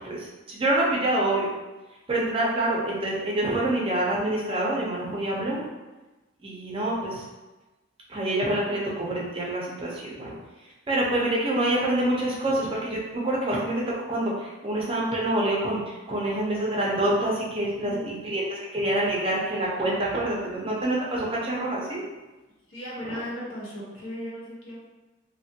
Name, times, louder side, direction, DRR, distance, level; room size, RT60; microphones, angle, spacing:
voice 1, 0.0-1.5 2.1-5.7 6.4-7.2 8.1-10.3 10.9-22.0 23.1-23.2, right 1 dB, 25° right, -4 dB, 0.5 m, -26 dB
voice 2, 17.8-18.2 20.5-20.8 22.7-24.8, equal, 80° left, -6 dB, 1.0 m, -37 dB
3.3 x 2.1 x 2.7 m, 1.1 s
head